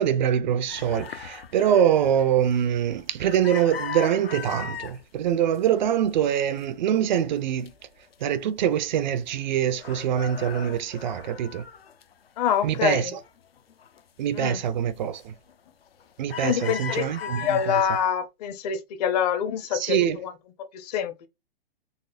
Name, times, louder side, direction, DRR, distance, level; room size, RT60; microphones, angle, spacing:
voice 1, 0.0-7.7 8.2-11.6 12.6-13.2 14.2-15.3 16.2-17.8 19.7-20.2, right 9 dB, 50° right, 0.5 m, -24 dB
sound 1, 0.7-5.0 5.5-6.0 6.3-7.7 8.1-8.2 8.5-9.5 9.7-12.5 12.9-14.0 14.4-14.7 15.1-15.5 15.9-18.1, left 8 dB, 75° left, 0.7 m, -39 dB
voice 2, 12.4-13.1 14.3-14.6 16.4-20.3 20.7-21.3, left 8 dB, 40° left, 0.7 m, -26 dB
4.1 x 3.1 x 2.5 m
figure-of-eight pair, 120°, 30 cm